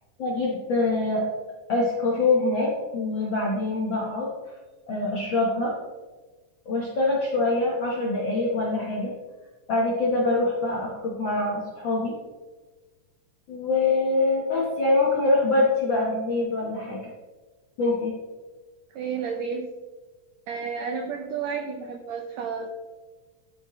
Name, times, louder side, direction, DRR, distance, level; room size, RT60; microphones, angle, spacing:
voice 1, 0.2-1.2 1.7-4.3 4.9-5.7 6.6-9.1 9.7-12.1 13.5-17.0 17.8-18.2, left 2 dB, 65° left, -5 dB, 1.2 m, -24 dB
voice 2, 18.9-19.7 20.5-22.7, right 6 dB, 90° right, 4 dB, 1.5 m, -31 dB
12.5 x 4.5 x 3.1 m, 1.3 s
omnidirectional pair, 3.9 m